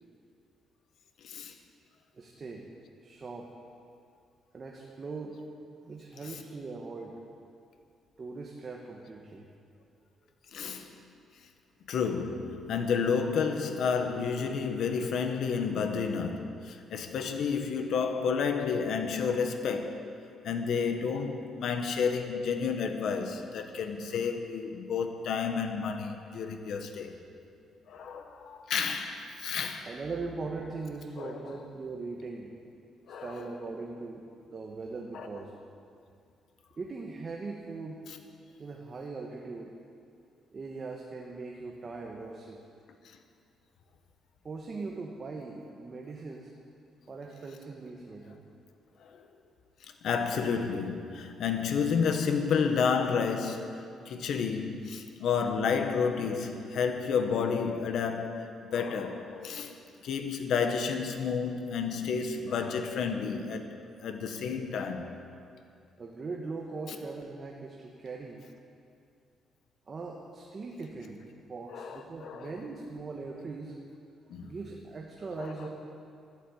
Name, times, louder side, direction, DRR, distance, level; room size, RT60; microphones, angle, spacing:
voice 1, 1.2-1.5 10.5-10.9 11.9-20.0 20.4-27.2 27.9-29.9 31.2-31.6 33.1-33.3 35.1-35.3 49.0-49.3 49.8-59.7 60.0-65.1 71.7-72.5 74.3-74.5 75.4-75.5, left 6 dB, 65° left, 1.3 m, -31 dB
voice 2, 2.1-2.6 3.0-3.5 4.5-7.1 8.2-9.5 10.2-10.3 29.8-32.5 33.1-34.2 34.5-35.5 36.8-38.1 38.5-39.7 40.5-42.6 44.4-46.5 47.1-48.4 66.0-68.4 69.9-71.2 71.5-73.8 74.2-75.7, right 3 dB, 30° right, 1.4 m, -40 dB
14.5 x 11.0 x 8.7 m
cardioid pair, 150°, 0 cm